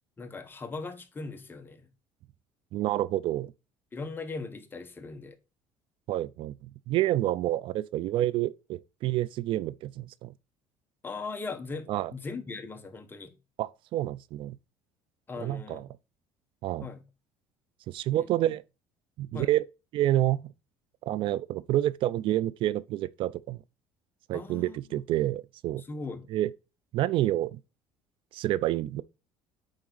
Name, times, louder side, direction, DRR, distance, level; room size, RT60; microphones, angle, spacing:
voice 1, 0.2-1.9 3.9-5.4 11.0-13.3 15.3-15.8 16.8-17.0 18.1-18.3 19.3-19.5 24.3-25.0 25.8-26.3, left 3 dB, 20° left, 1.1 m, -39 dB
voice 2, 2.7-3.5 6.1-10.3 11.9-12.1 13.6-14.6 15.4-15.8 16.6-16.9 17.9-18.6 19.2-19.6 19.9-20.5 21.0-23.6 24.3-25.8 26.3-26.5 26.9-27.6 28.3-29.0, right 14 dB, 60° right, 0.4 m, -28 dB
8.8 x 3.6 x 3.9 m
cardioid pair, 110°, 10 cm